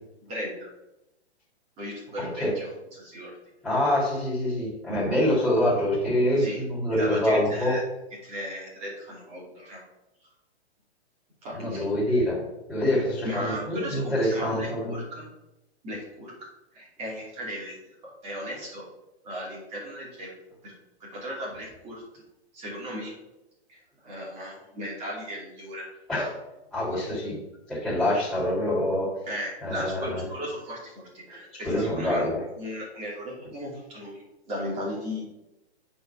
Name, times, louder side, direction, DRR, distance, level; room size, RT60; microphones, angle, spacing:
voice 1, 0.2-0.7 1.8-3.3 6.3-6.6 7.0-7.8 8.2-9.8 11.4-11.9 13.2-15.3 15.8-16.3 16.7-17.8 18.0-18.8 19.2-20.3 20.6-20.7 21.0-22.0 22.5-23.1 23.7-25.9 29.3-32.3 32.6-35.2, equal, 20° right, -4 dB, 2.6 m, -36 dB
voice 2, 2.2-2.5 3.6-7.8 11.5-12.4 12.7-15.0 26.1-26.3 26.7-27.4 27.7-29.1 29.6-30.2 31.5-32.4, left 1 dB, ahead, -12 dB, 3.1 m, -25 dB
9.1 x 4.2 x 5.6 m, 0.93 s
hypercardioid pair, 160°, 33 cm